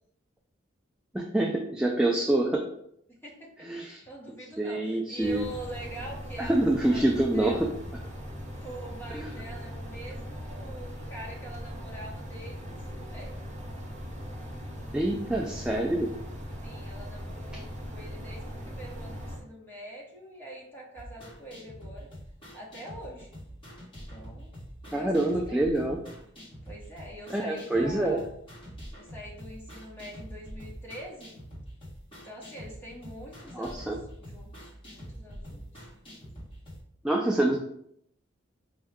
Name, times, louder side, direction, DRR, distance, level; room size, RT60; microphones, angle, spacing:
voice 1, 1.1-2.6 3.6-4.0 4.6-5.4 6.4-7.7 9.1-9.3 14.9-16.1 24.9-26.0 27.3-28.2 33.5-34.0 37.0-37.6, right 1 dB, 5° right, 0 dB, 0.3 m, -26 dB
voice 2, 3.1-7.7 8.5-13.6 16.6-22.1 22.5-23.3 24.1-24.5 24.8-25.7 26.6-28.3 28.9-31.4 32.1-35.9, right 1 dB, 10° left, -3 dB, 1.1 m, -44 dB
sound 1, 5.2-19.4, equal, 40° right, 1.0 m, -40 dB
sound 2, 21.0-36.8, equal, 25° left, 1.5 m, -45 dB
5.3 x 2.2 x 3.5 m, 0.72 s
head